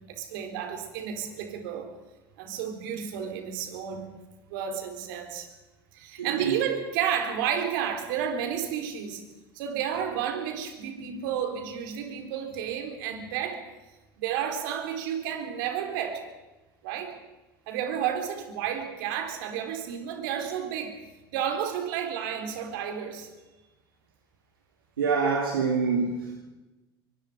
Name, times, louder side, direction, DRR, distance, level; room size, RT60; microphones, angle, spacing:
voice 1, 0.1-1.9 2.4-4.1 4.5-5.5 5.9-9.2 9.5-13.6 14.2-16.2 16.8-17.1 17.7-21.0 21.3-23.3, right 8 dB, 70° right, 4.0 m, -31 dB
voice 2, 6.2-6.5 25.0-26.3, right 5 dB, 90° right, 2.4 m, -26 dB
24.5 x 23.5 x 5.2 m
hypercardioid pair, 80°, 11 cm